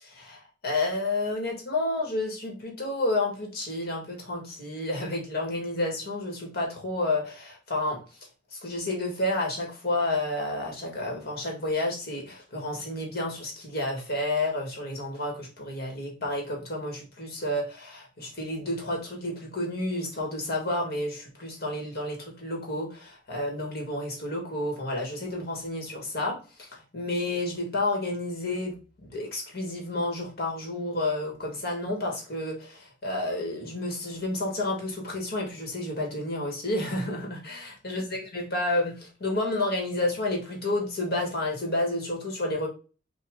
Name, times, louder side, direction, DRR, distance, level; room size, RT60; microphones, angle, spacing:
voice 1, 0.0-8.0 8.5-42.7, left 2 dB, 55° left, 0 dB, 1.8 m, -30 dB
5.6 x 2.6 x 3.6 m, 0.34 s
head